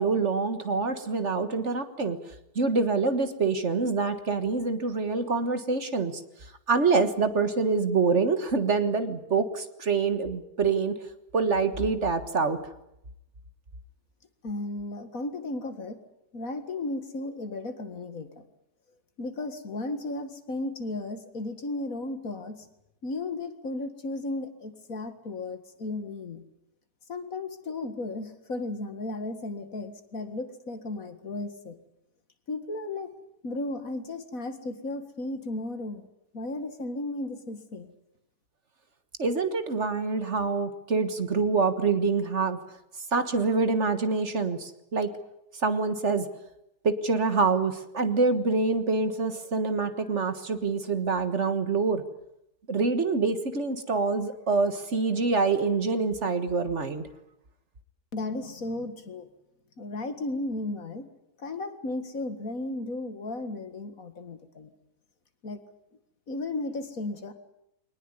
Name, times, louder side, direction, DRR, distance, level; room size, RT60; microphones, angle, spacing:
voice 1, 0.0-6.2 6.7-11.0 11.3-12.6 39.2-42.6 43.1-45.1 45.5-46.3 46.8-52.0 52.7-57.1, right 4 dB, 50° right, 10 dB, 1.8 m, -26 dB
voice 2, 14.4-16.0 16.3-18.4 19.2-22.7 23.0-26.4 27.1-31.8 32.5-33.1 33.4-36.1 36.3-37.9 58.1-59.3 59.8-61.1 61.4-64.7 65.4-65.6 66.3-67.3, left 2 dB, 60° left, 9 dB, 2.3 m, -34 dB
23.0 x 19.5 x 9.8 m, 0.83 s
omnidirectional pair, 1.7 m